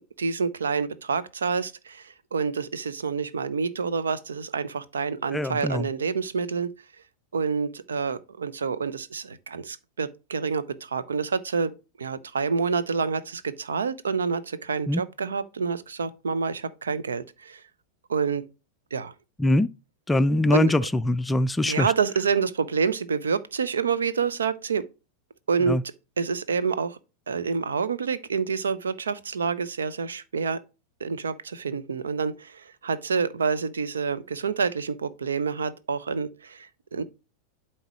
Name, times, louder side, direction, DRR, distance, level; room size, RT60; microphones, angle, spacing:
voice 1, 0.2-6.7 7.3-11.7 12.0-17.6 18.1-18.5 18.9-19.1 20.5-20.9 21.7-24.8 25.5-25.8 26.2-27.0 27.3-30.6 31.0-37.0, right 5 dB, 70° right, 0.6 m, -28 dB
voice 2, 5.3-5.9 14.9-15.0 19.4-19.7 20.1-21.9 25.7-25.8, left 1 dB, 10° left, 0.4 m, -22 dB
11.5 x 4.4 x 3.0 m
figure-of-eight pair, 90°, 0 cm